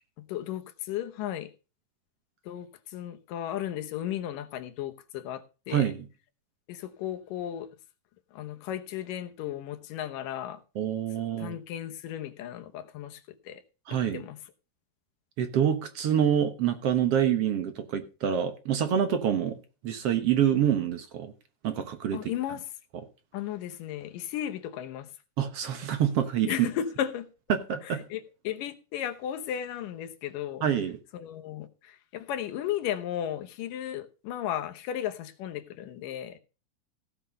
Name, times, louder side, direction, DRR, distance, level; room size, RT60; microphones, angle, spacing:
voice 1, 0.2-1.5 2.5-5.9 6.7-7.7 8.3-10.6 11.4-13.6 13.9-14.4 22.1-22.6 23.3-25.1 26.5-27.3 27.8-30.7 31.1-36.4, left 10 dB, 85° left, 2.7 m, -35 dB
voice 2, 5.7-6.1 10.8-11.6 13.9-14.2 15.4-19.6 19.8-21.3 21.6-22.3 25.4-26.7 27.5-28.0 30.6-31.0, right 9 dB, 60° right, 1.8 m, -26 dB
16.5 x 5.7 x 5.3 m
omnidirectional pair, 3.8 m